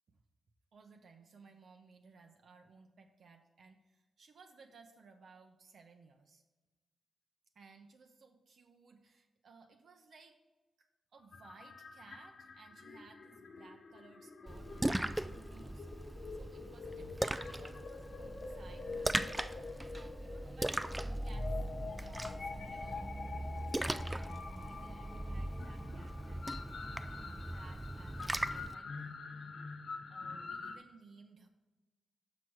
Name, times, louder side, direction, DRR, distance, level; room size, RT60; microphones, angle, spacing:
voice 1, 0.7-6.4 7.5-10.4 10.8-23.1 23.4-26.4 26.9-29.5 30.1-31.5, right 4 dB, 70° right, 4 dB, 0.7 m, -60 dB
sound 1, 11.2-30.8, left 4 dB, 60° left, 0.7 m, -46 dB
Splash splatter, 14.5-28.7, right 1 dB, 10° right, 0.3 m, -39 dB
6.2 x 5.9 x 4.7 m, 1.2 s
cardioid pair, 85°, 0 cm